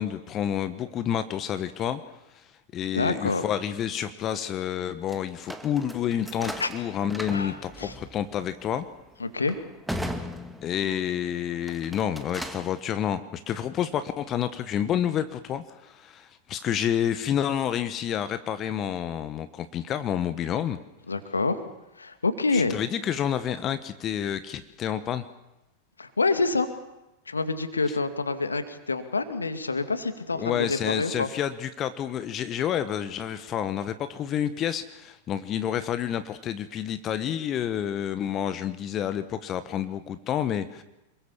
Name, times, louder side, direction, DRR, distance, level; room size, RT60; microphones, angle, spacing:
voice 1, 0.0-2.0 2.3-2.5 2.7-8.9 10.6-20.8 22.5-25.2 30.3-40.8, left 9 dB, 30° left, 12 dB, 1.4 m, -29 dB
voice 2, 2.9-3.4 6.6-6.7 7.3-7.9 9.2-9.6 21.1-21.6 22.0-22.8 26.0-26.7 27.3-31.3, left 3 dB, 75° left, 9 dB, 2.3 m, -27 dB
sound 1, 5.1-11.1 11.6-12.8, equal, ahead, 2.2 m, -38 dB
28.0 x 21.5 x 7.3 m, 0.95 s
figure-of-eight pair, 90°, 0 cm